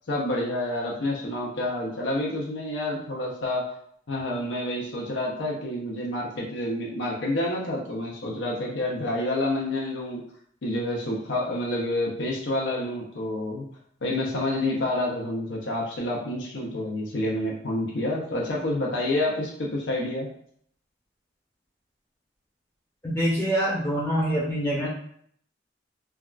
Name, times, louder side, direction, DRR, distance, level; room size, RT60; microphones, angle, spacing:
voice 1, 0.1-3.7 4.1-10.2 10.6-13.6 14.0-20.3, left 1 dB, 75° left, -2 dB, 0.6 m, -28 dB
voice 2, 23.0-24.9, equal, 15° left, -6 dB, 0.7 m, -25 dB
3.4 x 2.3 x 2.3 m, 0.65 s
head